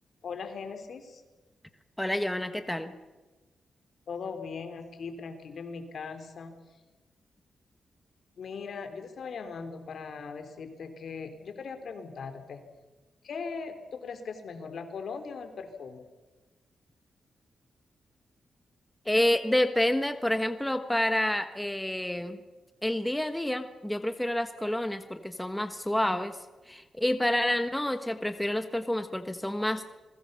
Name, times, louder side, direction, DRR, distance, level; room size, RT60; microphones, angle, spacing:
voice 1, 0.2-1.2 4.1-6.6 8.4-12.6 13.2-16.0, left 5 dB, 65° left, 7 dB, 3.9 m, -39 dB
voice 2, 2.0-2.9 19.0-22.4 22.8-26.4 26.7-29.8, left 1 dB, 5° left, 8 dB, 1.3 m, -28 dB
28.0 x 21.5 x 7.0 m, 1.2 s
wide cardioid pair, 110°, 0 cm